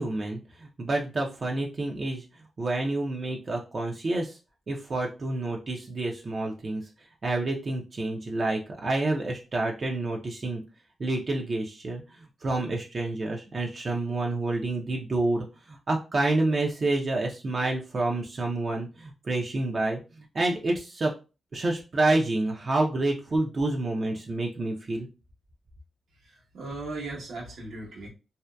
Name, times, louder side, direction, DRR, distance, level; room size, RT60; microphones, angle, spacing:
voice 1, 0.0-2.2 2.6-4.3 4.7-6.8 7.2-10.6 11.0-12.0 12.4-20.0 20.3-21.1 21.5-25.1, right 2 dB, 45° right, 0 dB, 0.5 m, -28 dB
voice 2, 26.2-28.1, right 2 dB, 85° right, -3 dB, 1.0 m, -37 dB
2.7 x 2.1 x 2.2 m, 0.30 s
cardioid pair, 75°, 0 cm